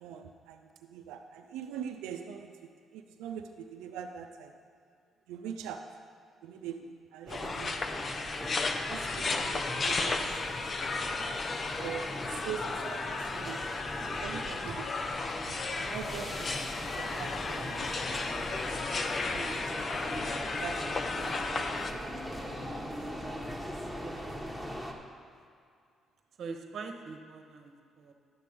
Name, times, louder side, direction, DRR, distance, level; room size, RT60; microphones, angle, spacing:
voice 1, 0.0-4.5 5.3-5.8 6.4-8.3 8.9-10.7 11.8-13.8 14.1-15.0 15.5-18.6 19.3-20.3 20.6-21.7 23.0-23.1, right 8 dB, 90° right, 4 dB, 0.5 m, -43 dB
sound 1, 7.3-21.9, left 3 dB, 45° left, 0.7 m, -34 dB
sound 2, 7.3-24.9, equal, 10° left, 1.3 m, -41 dB
voice 2, 23.9-24.6 26.4-28.1, right 4 dB, 65° right, 5 dB, 1.0 m, -44 dB
11.5 x 6.8 x 5.1 m, 2.2 s
supercardioid pair, 65°, 0 cm